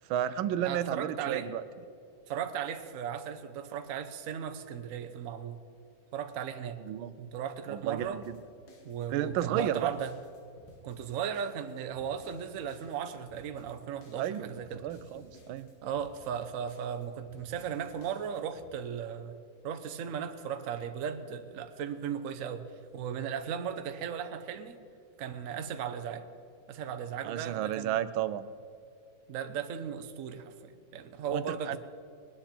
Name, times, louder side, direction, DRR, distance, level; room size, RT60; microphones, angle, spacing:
voice 1, 0.1-1.6 6.9-7.1 7.7-8.4 9.1-9.9 14.2-14.5 14.8-15.7 27.2-28.5 31.3-31.8, right 11 dB, 90° right, 14 dB, 1.4 m, -32 dB
voice 2, 0.6-1.5 2.3-5.6 6.1-6.8 7.2-8.2 8.8-10.1 10.8-14.8 15.8-19.4 19.6-22.7 22.9-24.8 25.2-26.3 26.7-28.0 29.3-31.8, right 8 dB, 55° right, 9 dB, 1.0 m, -36 dB
sound 1, 8.0-18.7, left 1 dB, 55° left, 1.8 m, -57 dB
20.5 x 10.0 x 4.4 m, 2.4 s
omnidirectional pair, 2.1 m